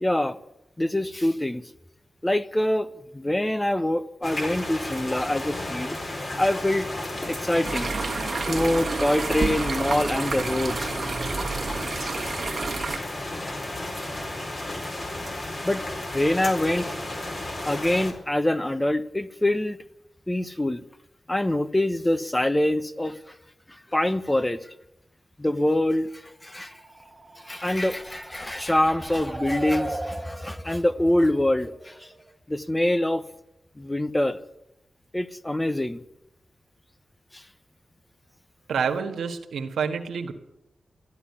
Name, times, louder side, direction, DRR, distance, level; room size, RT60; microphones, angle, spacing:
voice 1, 0.0-0.4 0.8-1.6 2.2-6.0 6.4-6.9 7.3-7.9 8.4-10.9 12.9-13.0 15.6-15.8 16.1-16.9 17.6-19.8 20.3-20.8 21.3-23.3 23.7-24.7 25.4-26.8 27.4-32.1 32.5-33.2 33.8-34.4 35.1-36.0 37.3-37.4, left 1 dB, 15° left, 13 dB, 1.0 m, -25 dB
sound 1, 4.2-18.1, left 1 dB, 45° left, 4.1 m, -33 dB
sound 2, 7.6-13.0, right 4 dB, 55° right, 1.7 m, -30 dB
sound 3, 26.5-32.3, right 2 dB, 25° right, 1.7 m, -38 dB
voice 2, 38.7-40.3, right 6 dB, 90° right, 6 dB, 1.6 m, -28 dB
14.0 x 10.0 x 9.9 m, 0.86 s
cardioid pair, 45°, 0 cm